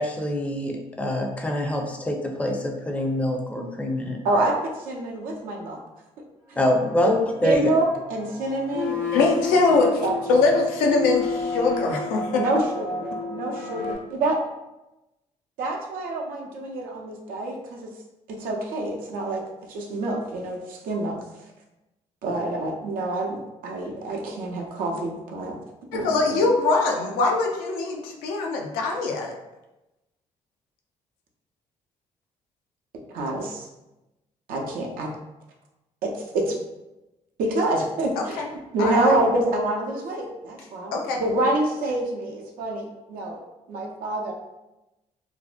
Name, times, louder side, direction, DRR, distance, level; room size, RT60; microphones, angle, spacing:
voice 1, 0.0-4.2 6.6-7.1 7.4-7.7, left 1 dB, 10° left, 2 dB, 0.5 m, -25 dB
voice 2, 4.2-5.8 6.5-6.6 7.0-7.2 7.4-9.0 10.0-10.2 12.3-14.4 15.6-17.9 18.3-21.2 22.2-25.6 25.9-26.4 33.1-33.7 34.5-35.1 36.0-36.6 37.4-38.4 38.7-43.4 43.7-44.3, right 2 dB, 75° right, -1 dB, 0.5 m, -27 dB
sound 1, 6.8-13.9, left 4 dB, 60° left, 0.9 m, -31 dB
voice 3, 9.1-10.0 10.3-12.4 25.9-29.3 38.2-38.5 38.8-39.1 40.9-41.2, left 3 dB, 80° left, 2 dB, 0.4 m, -22 dB
2.6 x 2.0 x 2.4 m, 0.98 s
hypercardioid pair, 55°, 15 cm